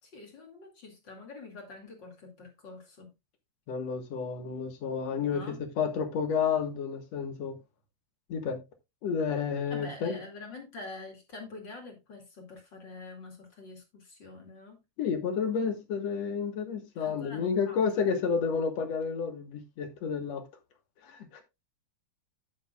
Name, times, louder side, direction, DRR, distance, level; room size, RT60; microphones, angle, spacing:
voice 1, 0.0-3.1 5.3-5.6 9.7-14.8 17.0-17.8, left 3 dB, 40° left, 2.8 m, -46 dB
voice 2, 3.7-7.6 8.3-8.6 9.0-10.2 15.0-20.4 21.0-21.4, left 6 dB, 65° left, 2.6 m, -31 dB
10.5 x 9.1 x 2.3 m
omnidirectional pair, 3.4 m